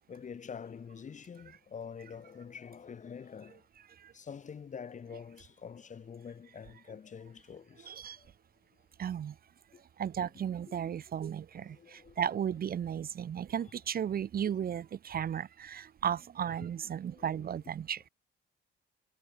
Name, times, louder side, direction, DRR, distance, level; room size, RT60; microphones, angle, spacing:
voice 1, 0.1-3.6 4.1-8.3 10.7-10.8 11.6-12.5 17.1-17.5, left 6 dB, 40° left, 1.0 m, -46 dB
voice 2, 7.9-8.2 9.0-9.3 10.0-18.0, right 9 dB, 50° right, 0.8 m, -35 dB
cardioid pair, 90°, 20 cm